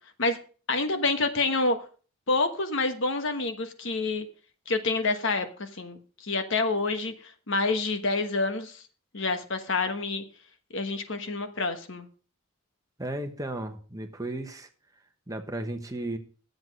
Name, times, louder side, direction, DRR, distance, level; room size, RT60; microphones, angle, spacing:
voice 1, 0.7-1.8 2.3-4.2 4.7-8.8 9.1-10.2 10.7-12.1, left 3 dB, 60° left, 8 dB, 1.2 m, -28 dB
voice 2, 13.0-14.7 15.3-16.2, right 1 dB, 15° right, 6 dB, 1.1 m, -34 dB
10.5 x 7.8 x 5.3 m, 0.39 s
head